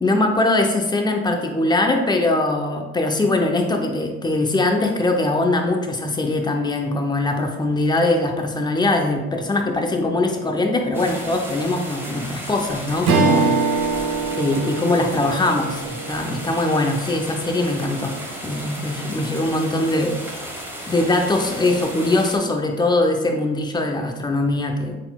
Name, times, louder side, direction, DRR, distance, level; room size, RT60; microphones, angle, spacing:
voice 1, 0.0-13.9 14.4-18.1 18.4-20.1 20.9-25.0, left 2 dB, 10° left, 3 dB, 0.6 m, -21 dB
sound 1, 10.9-22.4, equal, 5° right, 1.2 m, -34 dB
Strum, 13.0-17.7, right 4 dB, 50° right, 0.7 m, -24 dB
4.1 x 3.7 x 2.3 m, 1.1 s
hypercardioid pair, 65°, 35 cm